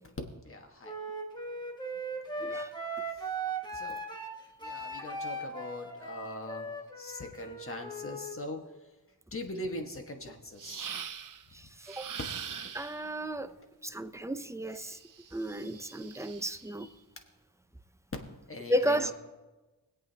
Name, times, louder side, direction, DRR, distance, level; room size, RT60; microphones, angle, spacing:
voice 1, 0.4-0.9 2.4-2.6 3.7-4.0 4.6-8.6 9.3-10.9 18.5-19.1, left 1 dB, 35° left, 1.5 m, -41 dB
Wind instrument woodwind instrument, 0.8-8.4, right 2 dB, 10° left, 1.3 m, -38 dB
voice 2, 2.4-2.7 11.5-12.1 12.7-13.6 13.8-15.0 15.3-16.9 18.7-19.1, equal, 10° right, 0.5 m, -33 dB
sound 1, 10.6-11.4 11.8-13.1 14.8-16.7, right 7 dB, 55° right, 0.6 m, -42 dB
24.0 x 8.3 x 2.8 m
wide cardioid pair, 105°, 38 cm